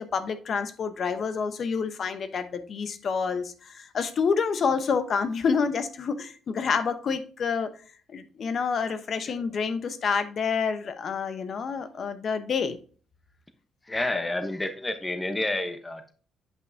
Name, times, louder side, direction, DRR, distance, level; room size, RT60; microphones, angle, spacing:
voice 1, 0.0-7.7 8.1-12.8, left 5 dB, 55° left, 0.9 m, -28 dB
voice 2, 13.8-16.1, left 2 dB, 15° left, 0.9 m, -30 dB
8.2 x 5.3 x 2.7 m
cardioid pair, 90°, 0 cm